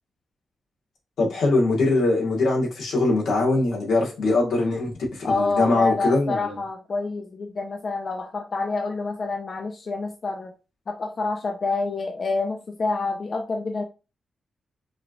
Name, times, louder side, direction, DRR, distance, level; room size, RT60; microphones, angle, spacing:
voice 1, 1.2-4.9 5.3-6.4, left 2 dB, 85° left, -2 dB, 1.6 m, -22 dB
voice 2, 5.2-10.5 10.9-13.8, left 3 dB, 45° left, 3 dB, 0.6 m, -27 dB
5.0 x 3.0 x 2.5 m, 0.30 s
cardioid pair, 110°, 0 cm